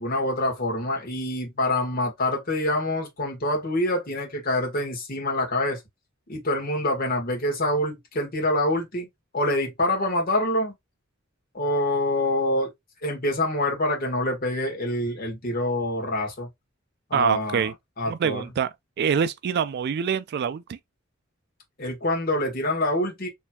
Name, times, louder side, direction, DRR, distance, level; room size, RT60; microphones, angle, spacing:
voice 1, 0.0-5.8 6.3-9.1 9.3-10.7 11.5-12.7 13.0-16.5 17.1-17.7 18.0-18.4 21.8-23.3, left 1 dB, 45° left, 1.6 m, -26 dB
voice 2, 17.1-17.7 18.1-18.7 19.0-20.8, right 7 dB, 55° right, 0.3 m, -25 dB
4.4 x 3.3 x 2.2 m
head